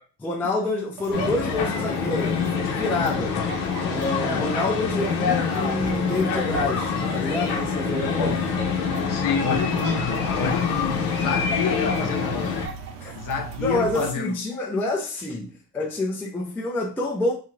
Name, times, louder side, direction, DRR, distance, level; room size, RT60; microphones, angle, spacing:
voice 1, 0.2-3.4 3.8-8.4 13.0-13.1 13.6-17.3, left 2 dB, 5° left, 0.3 m, -27 dB
sound 1, 1.0-14.1, right 5 dB, 85° right, 0.7 m, -39 dB
sound 2, 1.1-12.7, left 5 dB, 85° left, 0.9 m, -26 dB
voice 2, 9.1-12.5 13.1-14.4, left 5 dB, 45° left, 0.6 m, -28 dB
2.7 x 2.4 x 3.0 m
supercardioid pair, 110°, 46 cm